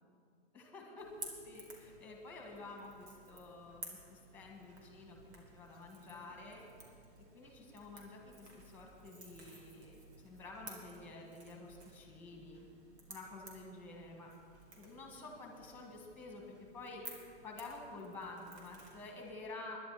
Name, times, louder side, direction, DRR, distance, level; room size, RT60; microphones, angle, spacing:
voice 1, 0.5-6.6 7.3-12.7 13.1-14.3 14.8-17.0 17.4-19.9, left 2 dB, 5° left, 1 dB, 1.9 m, -50 dB
Crackle / Crack, 1.0-19.3, right 2 dB, 85° right, 3.5 m, -55 dB
21.0 x 11.0 x 4.3 m, 2.3 s
hypercardioid pair, 160°, 32 cm